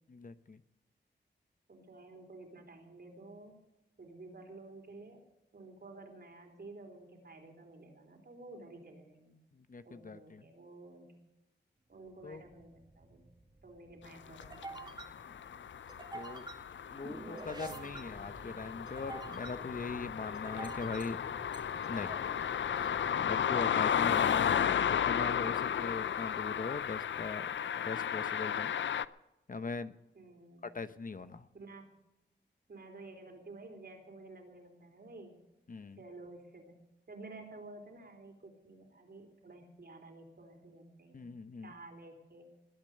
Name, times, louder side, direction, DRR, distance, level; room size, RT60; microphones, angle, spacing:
voice 1, 0.1-0.6 9.5-10.4 12.2-12.4 15.2-15.3 16.1-16.4 16.9-21.2 21.8-22.2 22.7-27.5 27.8-28.7 29.5-29.9 30.6-31.5 35.7-36.0 41.1-41.7, left 4 dB, 45° left, 11 dB, 0.9 m, -41 dB
voice 2, 1.7-3.6 4.0-5.2 5.5-9.4 9.8-11.2 11.9-13.2 13.6-15.0 16.7-18.5 30.1-30.6 31.5-31.9 32.7-35.4 36.0-36.6 37.1-41.2 41.6-42.5, right 2 dB, 55° right, 3 dB, 4.0 m, -52 dB
sound 1, 12.1-24.8, right 2 dB, 25° right, 2.3 m, -49 dB
sound 2, 14.4-29.1, left 9 dB, 80° left, 0.5 m, -34 dB
21.0 x 8.9 x 6.6 m, 0.97 s
cardioid pair, 65°, 19 cm